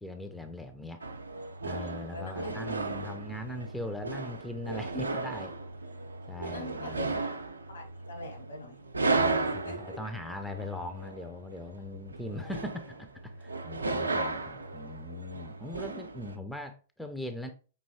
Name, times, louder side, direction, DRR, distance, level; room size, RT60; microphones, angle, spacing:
voice 1, 0.0-1.0 1.6-5.6 6.3-7.1 9.1-17.5, left 1 dB, 5° left, 6 dB, 0.4 m, -40 dB
sound 1, 1.0-16.4, right 3 dB, 80° right, 0.5 m, -35 dB
voice 2, 2.1-2.6 6.5-7.2 7.7-8.9 9.1-10.0, equal, 75° left, 3 dB, 1.5 m, -41 dB
5.4 x 2.8 x 2.7 m, 0.37 s
figure-of-eight pair, 110°, 0 cm